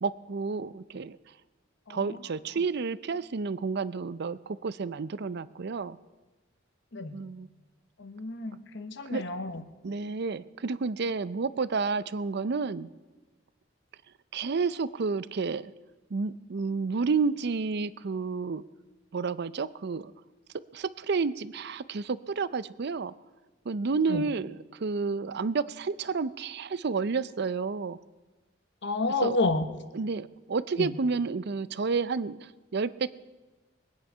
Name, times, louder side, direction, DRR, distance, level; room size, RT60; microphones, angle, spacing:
voice 1, 0.0-1.2 1.9-6.0 7.1-7.5 9.1-9.2 9.8-12.9 14.3-15.7 16.1-18.6 19.1-20.1 20.7-23.1 23.6-28.0 29.2-29.4 29.9-33.1, right 4 dB, 60° right, 16 dB, 0.5 m, -30 dB
voice 2, 8.0-9.6 24.1-24.2 28.8-29.7 30.8-30.9, left 2 dB, 65° left, 9 dB, 1.1 m, -30 dB
22.0 x 9.6 x 5.6 m, 1.2 s
head